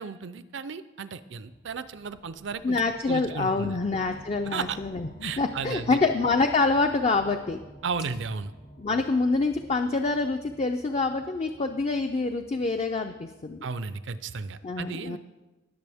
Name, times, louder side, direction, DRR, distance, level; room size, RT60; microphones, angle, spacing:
voice 1, 0.0-2.8 3.1-3.8 4.4-4.8 5.2-6.0 7.8-8.5 13.6-15.2, right 5 dB, 65° right, 14 dB, 0.5 m, -34 dB
sound 1, 1.4-14.0, equal, 70° left, 2.3 m, -51 dB
voice 2, 2.6-7.6 8.8-13.7 14.6-15.2, left 3 dB, 35° left, 6 dB, 0.4 m, -26 dB
19.0 x 6.8 x 3.5 m, 1.1 s
head